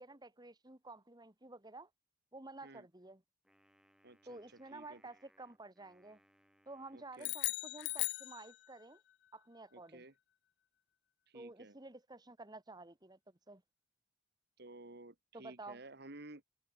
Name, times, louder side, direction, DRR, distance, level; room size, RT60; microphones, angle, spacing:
voice 1, 0.0-1.9 2.3-3.2 4.3-6.2 6.7-9.0 9.3-10.0 11.3-13.2 13.5-13.6 15.3-15.8, right 2 dB, 20° right, 2.2 m, -52 dB
Wind instrument woodwind instrument, 3.4-7.9, equal, 5° right, 7.7 m, -72 dB
voice 2, 4.0-4.4 4.7-5.0 6.9-7.3 9.7-10.1 11.3-11.8 14.6-16.4, right 2 dB, 55° right, 2.4 m, -54 dB
sound 1, 7.2-9.0, left 21 dB, 60° left, 0.3 m, -38 dB
head